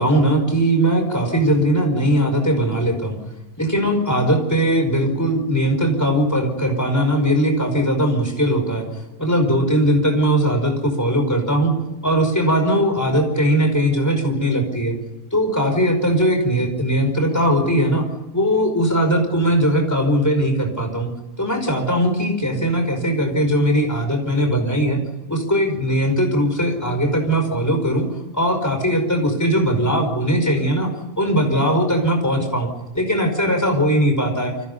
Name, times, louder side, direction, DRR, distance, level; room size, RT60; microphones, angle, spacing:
voice 1, 0.0-3.2 3.6-8.9 9.2-11.8 12.0-15.0 15.3-18.1 18.3-21.1 21.4-25.0 25.3-28.1 28.3-30.9 31.2-32.7 32.9-34.5, equal, 10° left, 4 dB, 5.2 m, -19 dB
29.5 x 25.0 x 5.5 m, 1.1 s
omnidirectional pair, 1.6 m